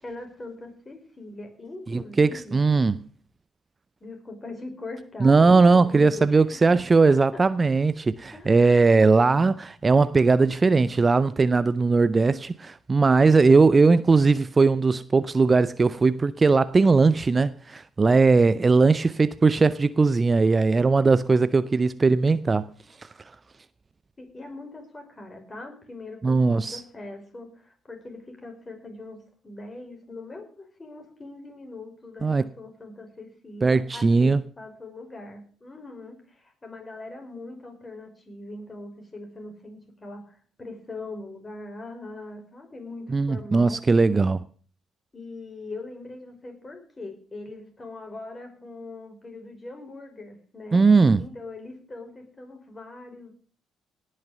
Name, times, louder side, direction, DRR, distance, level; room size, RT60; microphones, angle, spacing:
voice 1, 0.0-2.6 4.0-6.8 7.1-7.4 8.3-9.1 24.2-43.8 45.1-50.8 51.1-53.3, left 2 dB, 25° left, 5.6 m, -41 dB
voice 2, 1.9-3.0 5.2-22.7 26.2-26.8 32.2-32.4 33.6-34.4 43.1-44.4 50.7-51.2, right 4 dB, 30° right, 0.5 m, -19 dB
18.5 x 6.6 x 6.7 m
figure-of-eight pair, 45°, 0 cm